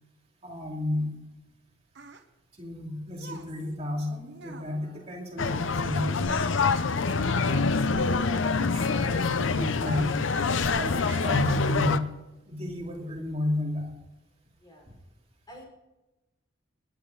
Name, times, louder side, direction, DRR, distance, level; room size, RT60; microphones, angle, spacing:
voice 1, 0.4-1.1 2.6-6.7 7.4-10.3 10.7-12.1 12.5-13.9, left 1 dB, 35° right, -1 dB, 2.5 m, -33 dB
sound 1, 1.4-6.8 7.1-9.2 9.7-10.3 10.6-12.1 12.8-13.0, right 5 dB, 60° right, 1.2 m, -47 dB
voice 2, 4.7-5.1 14.6-14.9 15.5-15.6, equal, 20° left, -2 dB, 5.3 m, -51 dB
sound 2, 5.4-12.0, left 4 dB, 70° left, 0.6 m, -25 dB
19.5 x 10.0 x 3.9 m, 1.0 s
head